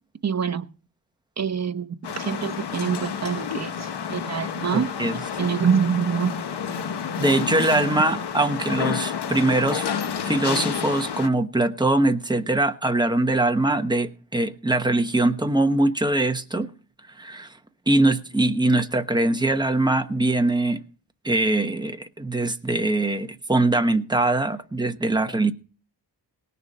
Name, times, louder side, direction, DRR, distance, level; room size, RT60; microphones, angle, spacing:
voice 1, 0.2-0.7 1.4-1.9 2.2-4.9 5.4-6.3, right 7 dB, 40° right, 0.8 m, -25 dB
sound 1, 2.0-11.3, left 7 dB, 65° left, 1.0 m, -30 dB
voice 2, 4.7-5.2 7.2-9.9 10.2-16.7 17.2-17.5 17.9-20.8 21.2-25.5, right 2 dB, 10° right, 1.0 m, -22 dB
18.5 x 6.9 x 5.4 m
wide cardioid pair, 150°, 43 cm